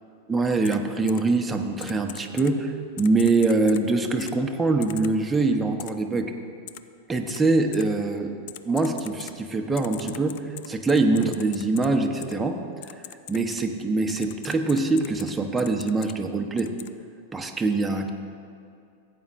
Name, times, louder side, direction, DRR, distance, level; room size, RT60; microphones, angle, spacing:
voice 1, 0.3-6.3 7.1-8.4 8.6-12.9 13.3-16.7 17.3-18.1, right 3 dB, 10° right, 3 dB, 0.9 m, -24 dB
Typing, 0.6-0.8 1.1-1.2 1.8-2.5 3.0-3.8 4.2-4.3 4.8-5.1 5.8-5.9 6.7-6.8 7.3-7.4 7.7-7.8 8.5-9.3 9.8-11.9 12.2-12.3 12.8-13.6 14.1-15.3 15.6-16.1 16.6-16.9, left 14 dB, 60° left, 0.4 m, -40 dB
16.0 x 8.6 x 2.6 m, 2.5 s
hypercardioid pair, 100°, 0 cm